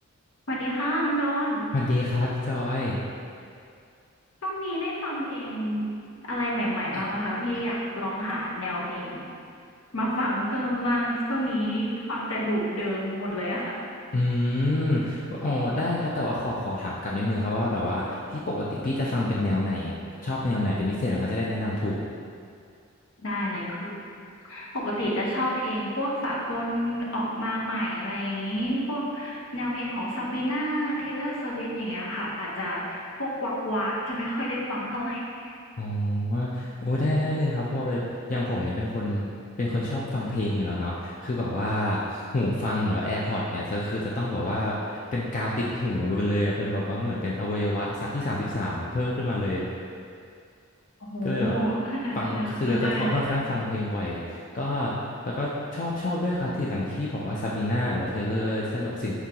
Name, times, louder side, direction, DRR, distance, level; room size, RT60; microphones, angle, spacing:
voice 1, 0.5-1.7 4.4-5.9 6.3-9.2 9.9-13.8 23.2-24.1 24.4-35.5 51.0-53.1, equal, 70° left, -4 dB, 0.8 m, -29 dB
voice 2, 1.7-3.0 6.9-7.0 14.1-19.9 20.2-22.0 35.8-39.3 39.6-49.6 51.2-51.5 52.2-54.9 55.2-59.1, left 1 dB, 35° left, -5 dB, 0.4 m, -27 dB
4.5 x 3.8 x 2.8 m, 2.3 s
head